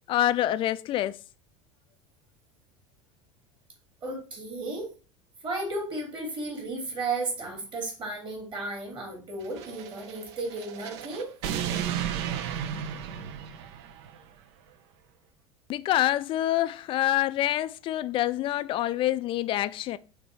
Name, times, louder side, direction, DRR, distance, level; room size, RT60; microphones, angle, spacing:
voice 1, 0.1-1.2 15.7-20.0, left 13 dB, 30° left, 0.4 m, -26 dB
voice 2, 4.0-4.9 5.4-11.3, right 2 dB, 30° right, 2.8 m, -34 dB
sound 1, 9.4-14.2, right 9 dB, 55° right, 0.6 m, -34 dB
6.1 x 3.3 x 4.5 m
figure-of-eight pair, 75°, 17 cm